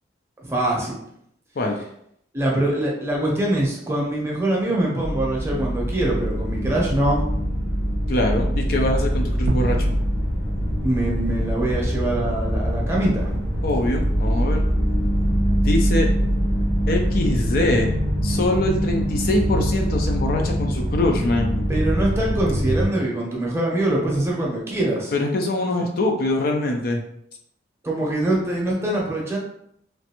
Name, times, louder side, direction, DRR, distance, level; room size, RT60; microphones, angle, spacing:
voice 1, 0.4-0.9 2.3-7.2 10.8-13.3 21.7-25.1 27.8-29.4, right 1 dB, 15° right, -3 dB, 0.7 m, -23 dB
sound 1, 5.0-22.9, equal, 80° left, 1.2 m, -23 dB
voice 2, 8.1-9.9 13.6-14.6 15.6-16.1 16.9-17.9 18.2-21.6 25.1-27.0, left 1 dB, 55° left, 2 dB, 0.4 m, -23 dB
sound 2, 9.5-12.0, right 1 dB, 55° right, 0.3 m, -30 dB
3.1 x 2.5 x 2.9 m, 0.71 s
head